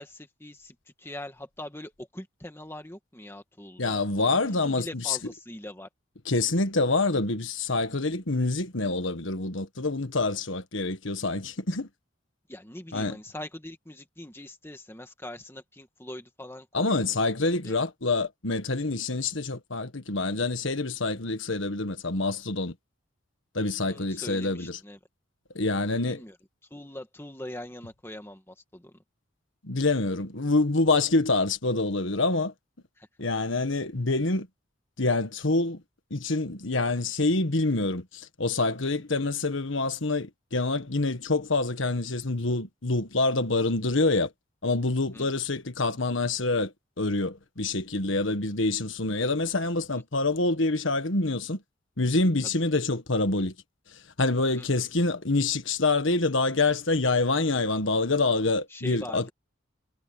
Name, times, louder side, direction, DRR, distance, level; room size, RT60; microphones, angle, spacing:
voice 1, 0.0-4.0 4.6-5.9 12.5-17.1 17.6-17.8 23.9-25.0 26.1-26.4 26.7-28.9 33.0-33.1 45.1-45.3 49.9-50.0 52.4-52.5 54.6-54.8 58.1-58.2 58.7-59.3, left 1 dB, 10° left, 1.8 m, -42 dB
voice 2, 3.8-5.2 6.3-11.9 12.9-13.2 16.7-22.7 23.5-24.8 25.5-26.2 29.6-32.5 33.2-34.5 35.0-35.8 36.1-44.3 44.6-51.6 52.0-53.5 54.2-59.3, left 3 dB, 65° left, 1.5 m, -26 dB
head